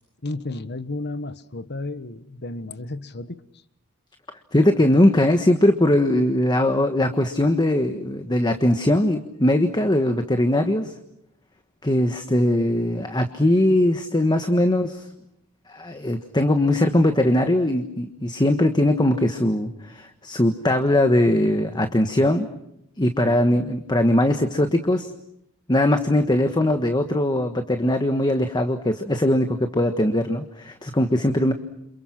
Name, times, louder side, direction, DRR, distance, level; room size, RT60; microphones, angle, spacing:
voice 1, 0.2-3.4 23.2-23.4, left 2 dB, 50° left, 1.3 m, -33 dB
voice 2, 4.5-10.9 11.8-15.0 15.7-22.5 23.0-25.1 25.7-31.5, left 1 dB, 20° left, 1.4 m, -20 dB
29.5 x 27.5 x 5.9 m
head